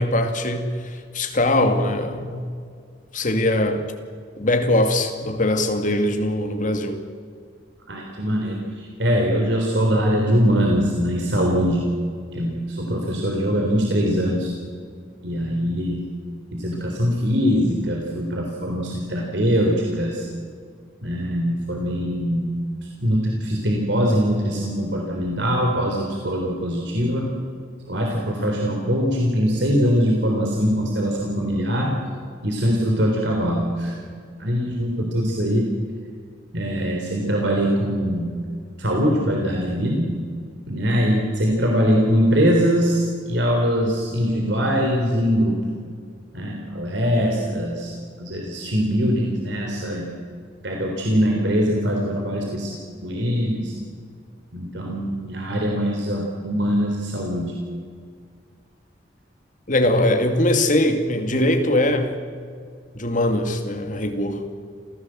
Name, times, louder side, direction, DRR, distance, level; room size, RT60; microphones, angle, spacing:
voice 1, 0.0-2.5 3.1-3.8 4.4-7.0 59.7-62.2 62.9-64.4, left 1 dB, 45° left, 6 dB, 2.4 m, -21 dB
voice 2, 7.9-11.9 12.3-14.5 15.2-16.1 16.5-20.3 21.0-27.3 27.9-31.9 32.4-34.0 34.4-35.7 36.5-38.3 38.8-40.1 40.7-45.6 46.3-50.1 50.6-53.7 54.5-57.5, equal, 70° right, 0 dB, 3.7 m, -22 dB
28.0 x 16.0 x 7.7 m, 2.1 s
head